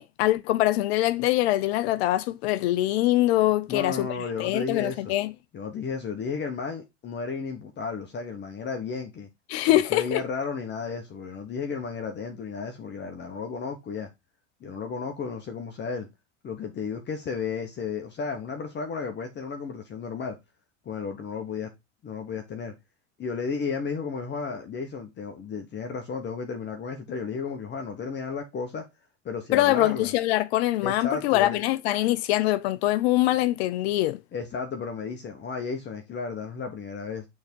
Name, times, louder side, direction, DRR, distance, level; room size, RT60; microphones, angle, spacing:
voice 1, 0.0-4.1 4.4-5.3 9.5-10.2 29.5-34.2, left 16 dB, 60° left, 0.5 m, -23 dB
voice 2, 3.7-5.1 5.5-9.3 9.7-14.1 14.6-16.1 16.4-20.4 20.8-21.7 22.0-22.7 23.2-28.8 29.2-30.1 30.8-31.6 34.3-37.3, left 5 dB, 30° left, 1.1 m, -33 dB
6.4 x 3.6 x 4.5 m
hypercardioid pair, 95°, 35 cm